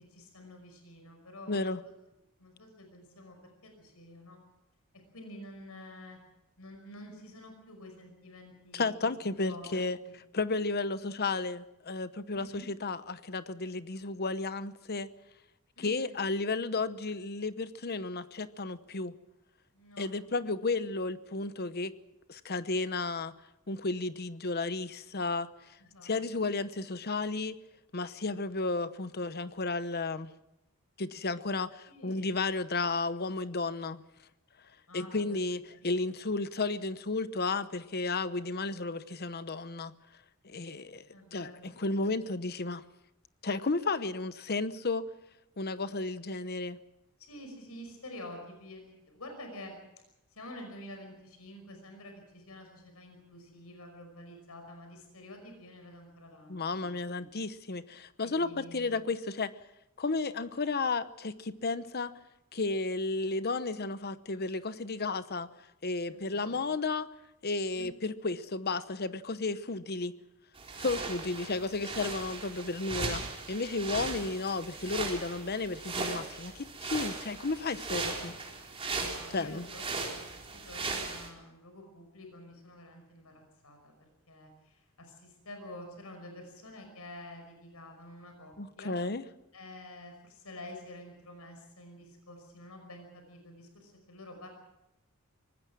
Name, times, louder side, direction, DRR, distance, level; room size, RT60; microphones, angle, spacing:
voice 1, 0.1-1.9 2.4-3.4 3.6-4.5 5.1-6.2 6.6-9.0 9.2-10.1 12.3-12.7 15.8-16.2 19.7-20.4 25.8-26.1 31.9-32.3 34.9-35.4 35.7-35.8 36.1-36.2 41.1-41.7 42.0-42.1 47.2-49.8 50.3-57.3 58.2-59.0 66.1-66.7 67.7-68.1 79.1-89.0 89.5-94.5, left 1 dB, 90° left, 4 dB, 5.6 m, -49 dB
voice 2, 1.5-1.8 8.7-10.0 10.3-15.1 15.8-19.1 20.0-21.9 22.3-23.3 23.7-25.5 26.0-27.6 27.9-30.3 31.0-34.0 34.9-39.9 40.4-42.8 43.4-45.0 45.6-46.8 56.5-59.5 60.0-62.2 62.5-65.5 65.8-67.1 67.4-70.1 70.8-73.2 73.5-78.3 79.3-79.6 88.6-89.2, left 3 dB, 45° left, 13 dB, 0.9 m, -33 dB
sound 1, 70.5-81.3, right 3 dB, 25° right, 4.2 m, -38 dB
24.5 x 19.5 x 6.2 m, 0.88 s
head